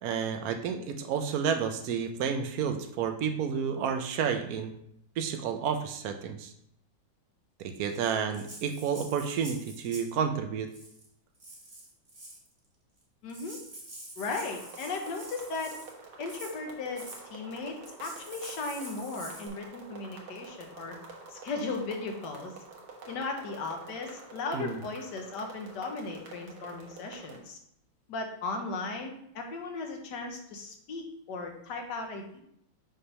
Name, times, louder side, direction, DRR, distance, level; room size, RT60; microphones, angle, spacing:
voice 1, 0.0-4.7 5.2-6.5 7.6-10.7 24.5-24.8, right 7 dB, 65° right, 6 dB, 0.9 m, -30 dB
Rattle (instrument), 7.9-10.2 10.7-11.1 11.4-12.5 13.0-13.1 13.3-15.9 16.3-16.6 17.0-17.2 17.8-19.5, right 1 dB, 25° right, 1.1 m, -46 dB
voice 2, 13.2-13.6 14.2-15.7 16.2-21.0 21.3-22.5 23.1-27.6 28.1-32.4, left 3 dB, 65° left, 3 dB, 1.5 m, -36 dB
sound 1, 14.3-27.4, right 3 dB, 90° right, 2.0 m, -48 dB
5.8 x 3.3 x 5.4 m, 0.74 s
omnidirectional pair, 2.1 m